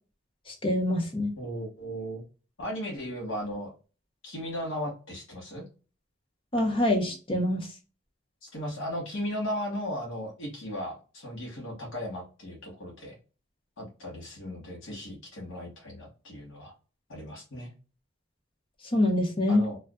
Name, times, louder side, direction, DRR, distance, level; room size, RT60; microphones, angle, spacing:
voice 1, 0.5-1.3 6.5-7.7 18.9-19.6, left 1 dB, 30° left, 1 dB, 0.7 m, -25 dB
voice 2, 1.4-2.2 2.6-3.7 4.2-5.6 8.4-13.1 13.8-16.7 17.1-17.7 19.5-19.8, equal, 75° left, -2 dB, 1.1 m, -36 dB
2.4 x 2.2 x 2.3 m, 0.33 s
head